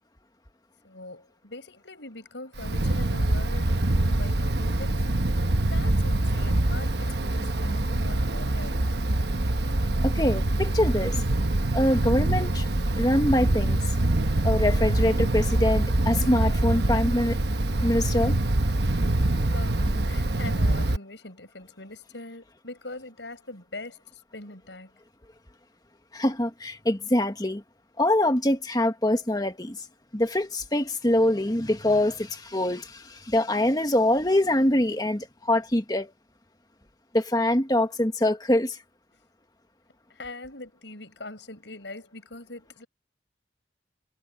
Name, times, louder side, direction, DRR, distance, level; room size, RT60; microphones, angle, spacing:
voice 1, 0.8-5.2 5.6-8.8 19.4-24.0 24.3-24.9 40.1-42.9, left 2 dB, 80° left, 6.7 m, -42 dB
Wind, 2.6-21.0, right 1 dB, 65° right, 1.1 m, -24 dB
voice 2, 10.0-11.1 11.7-12.7 12.9-13.8 14.4-17.4 17.8-18.4 26.1-27.6 28.0-29.8 30.1-36.1 37.1-38.8, left 1 dB, 20° left, 1.7 m, -24 dB
head